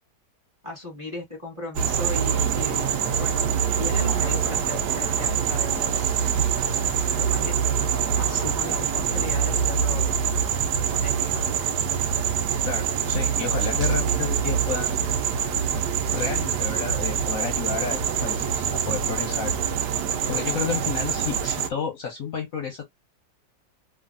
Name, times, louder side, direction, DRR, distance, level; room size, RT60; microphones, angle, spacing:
voice 1, 0.6-3.5 3.8-5.9 6.4-6.6 7.0-7.6 8.1-10.1 10.9-11.6, left 2 dB, 20° right, 1.0 m, -36 dB
sound 1, 1.8-21.7, right 7 dB, 70° right, 1.1 m, -25 dB
voice 2, 12.6-14.9 16.1-19.5 20.3-22.8, left 6 dB, 60° left, 0.9 m, -31 dB
3.1 x 2.4 x 2.5 m
omnidirectional pair, 2.0 m